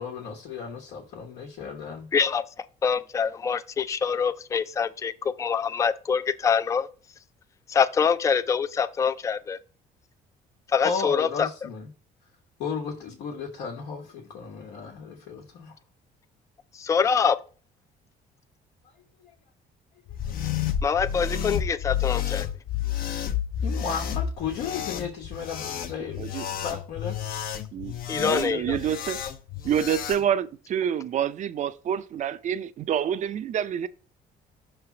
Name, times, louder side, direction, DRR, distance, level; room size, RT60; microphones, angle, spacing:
voice 1, 0.0-2.1 10.8-11.9 12.6-15.8 19.2-19.3 23.6-27.2 28.1-28.7, left 6 dB, 85° left, 1.2 m, -34 dB
voice 2, 2.1-2.4 2.8-6.9 7.7-9.6 10.7-11.5 16.8-17.4 20.8-22.5 28.1-28.8, left 6 dB, 20° left, 0.3 m, -25 dB
sound 1, 20.1-30.2, left 9 dB, 60° left, 0.7 m, -31 dB
voice 3, 27.7-29.2 29.6-33.9, right 9 dB, 45° right, 0.5 m, -27 dB
5.9 x 3.3 x 5.8 m
cardioid pair, 110°, 17 cm